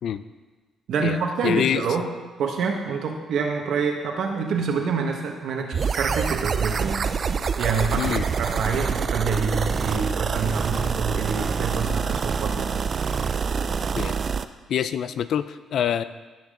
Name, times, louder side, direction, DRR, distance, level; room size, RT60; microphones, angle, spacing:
voice 1, 0.9-2.0 2.4-7.0 7.6-12.8, right 5 dB, 70° right, 2 dB, 1.5 m, -27 dB
voice 2, 1.4-1.9 8.0-8.2 13.9-14.2 14.7-16.0, left 9 dB, 70° left, 13 dB, 0.5 m, -25 dB
sound 1, 5.7-14.5, right 6 dB, 45° right, 0.4 m, -26 dB
17.0 x 6.2 x 3.8 m, 1.3 s
cardioid pair, 90°, 0 cm